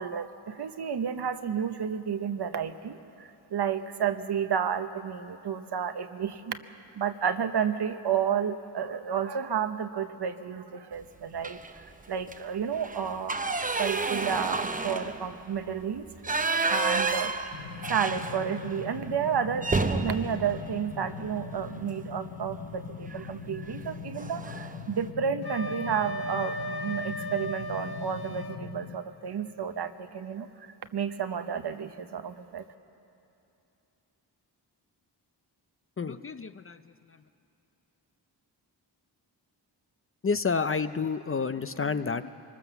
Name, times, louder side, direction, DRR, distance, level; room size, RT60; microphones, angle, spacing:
voice 1, 0.0-6.6 6.9-11.6 12.1-13.4 13.7-16.1 16.7-17.3 17.9-26.6 26.8-32.6, right 7 dB, 65° right, 9 dB, 1.0 m, -31 dB
sound 1, 11.4-11.8 12.2-12.4 12.7-18.8 19.1-19.2 19.6-21.7 23.1-23.3 23.7-23.9 24.2-24.8, right 3 dB, 20° right, 0.7 m, -31 dB
sound 2, 17.5-29.0, left 6 dB, 85° left, 1.0 m, -41 dB
Wind instrument woodwind instrument, 25.4-28.6, equal, 60° left, 1.2 m, -36 dB
voice 2, 36.0-37.2 40.2-42.3, left 5 dB, 30° left, 11 dB, 0.5 m, -30 dB
24.0 x 20.0 x 7.0 m, 2.8 s
wide cardioid pair, 135°, 43 cm